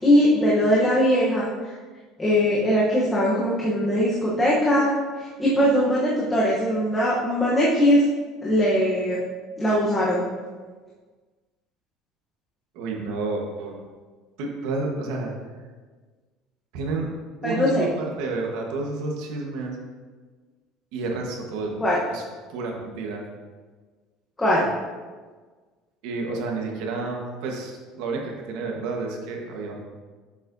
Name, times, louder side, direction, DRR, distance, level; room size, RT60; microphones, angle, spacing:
voice 1, 0.0-1.7 2.2-8.0 8.4-9.2 9.6-10.3 17.4-17.9 21.8-22.0 24.4-24.7, equal, 10° left, -6 dB, 1.0 m, -21 dB
voice 2, 12.7-13.8 14.4-15.3 16.7-17.1 17.4-19.8 20.9-21.7 22.1-22.2 22.5-23.3 26.0-29.8, right 3 dB, 70° right, 1 dB, 1.2 m, -30 dB
7.3 x 6.8 x 2.7 m, 1.4 s
cardioid pair, 165°, 0 cm